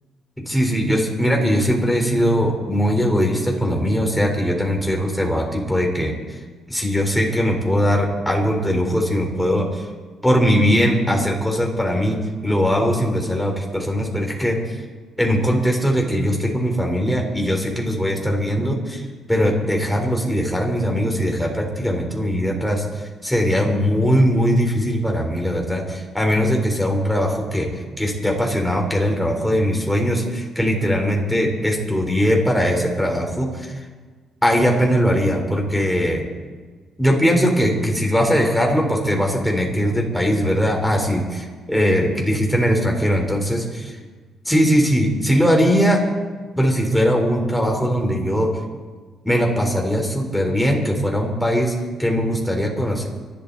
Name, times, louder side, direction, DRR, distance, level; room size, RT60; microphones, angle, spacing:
voice 1, 0.4-6.2 6.7-9.8 10.2-14.8 15.2-27.7 28.0-33.8 34.4-36.2 37.0-43.9 44.4-46.0 46.5-48.5 49.2-51.7 52.0-53.1, equal, 5° left, 0 dB, 4.6 m, -20 dB
25.0 x 12.5 x 4.3 m, 1.4 s
cardioid pair, 90°, 0 cm